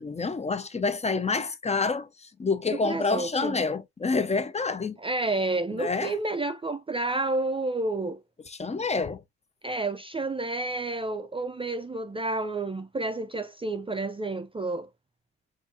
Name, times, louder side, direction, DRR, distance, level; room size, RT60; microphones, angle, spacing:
voice 1, 0.0-5.0 5.8-6.1 8.5-9.2, left 4 dB, 20° left, 0.6 m, -28 dB
voice 2, 2.7-3.6 5.0-8.2 9.6-14.9, right 2 dB, 20° right, 0.4 m, -30 dB
6.1 x 2.6 x 2.4 m
cardioid pair, 90°, 30 cm